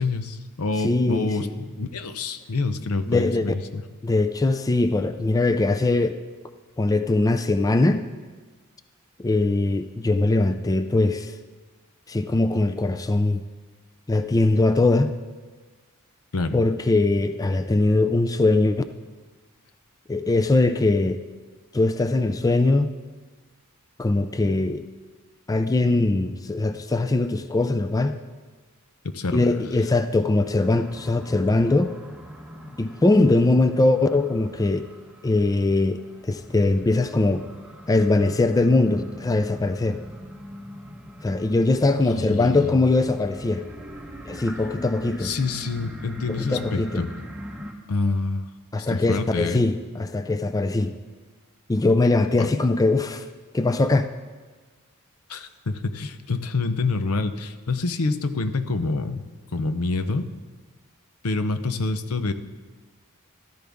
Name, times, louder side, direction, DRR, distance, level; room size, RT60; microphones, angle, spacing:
voice 1, 0.0-3.8 16.3-16.6 29.1-29.6 42.1-42.8 45.2-47.1 47.9-48.4 48.8-49.7 52.4-52.5 55.3-59.2 59.5-60.3 61.2-62.3, left 3 dB, 75° left, 9 dB, 0.7 m, -27 dB
voice 2, 0.8-1.5 3.1-3.5 4.0-6.2 6.8-8.0 9.2-11.3 12.1-13.4 14.1-15.2 16.5-18.8 20.1-21.2 21.7-22.9 24.0-24.9 25.5-28.2 29.3-31.9 32.8-34.9 35.2-37.5 37.9-40.0 41.2-43.7 44.3-45.3 46.3-47.1 48.7-51.0 51.7-53.2 53.5-54.1, left 2 dB, 15° left, 10 dB, 0.3 m, -21 dB
sound 1, 30.4-47.7, equal, 5° right, 1.2 m, -42 dB
14.0 x 13.0 x 3.5 m, 1.4 s
head